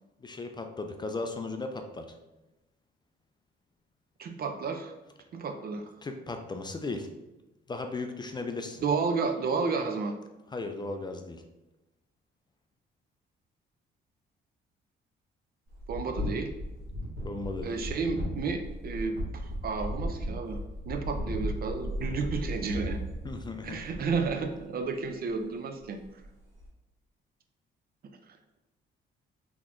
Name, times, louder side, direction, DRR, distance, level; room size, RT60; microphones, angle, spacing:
voice 1, 0.2-2.1 6.0-7.1 7.7-8.8 10.5-11.4 17.2-17.8 23.2-23.8, left 3 dB, 20° left, 5 dB, 0.3 m, -36 dB
voice 2, 4.2-4.9 5.3-5.8 8.8-10.1 15.9-16.5 17.6-20.6 20.9-23.0 23.6-26.0, right 4 dB, 50° right, 7 dB, 0.4 m, -31 dB
sound 1, 15.7-24.6 26.0-26.3 26.6-26.7, equal, 75° right, 1.3 m, -36 dB
3.8 x 2.9 x 2.5 m, 1.0 s
cardioid pair, 90°, 20 cm